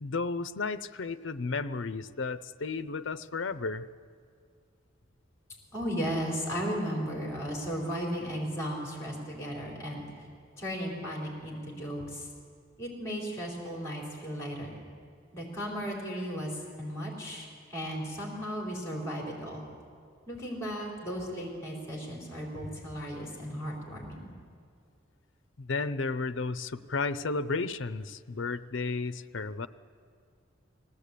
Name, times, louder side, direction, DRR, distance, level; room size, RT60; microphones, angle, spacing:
voice 1, 0.0-3.9 25.6-29.7, left 4 dB, 65° left, 13 dB, 0.6 m, -33 dB
voice 2, 5.7-10.0 10.6-12.3 12.8-14.8 15.3-19.6 20.3-24.3, equal, 15° left, -2 dB, 4.2 m, -35 dB
20.5 x 17.0 x 8.4 m, 2.2 s
head